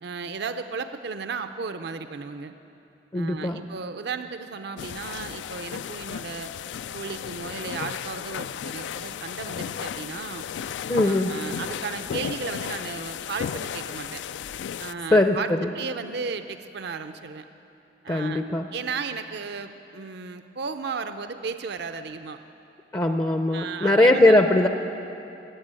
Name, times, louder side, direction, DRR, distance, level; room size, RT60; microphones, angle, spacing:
voice 1, 0.0-2.5 3.1-6.5 6.9-10.4 11.0-14.2 14.8-17.5 18.0-18.4 18.7-22.4 23.5-24.3, right 5 dB, 65° right, 9 dB, 0.6 m, -34 dB
voice 2, 3.1-3.6 10.9-11.3 15.1-15.7 18.1-18.7 22.9-24.7, left 1 dB, 20° left, 6 dB, 0.5 m, -20 dB
sound 1, 4.8-14.9, left 8 dB, 70° left, 0.3 m, -34 dB
19.0 x 8.3 x 8.8 m, 2.8 s
head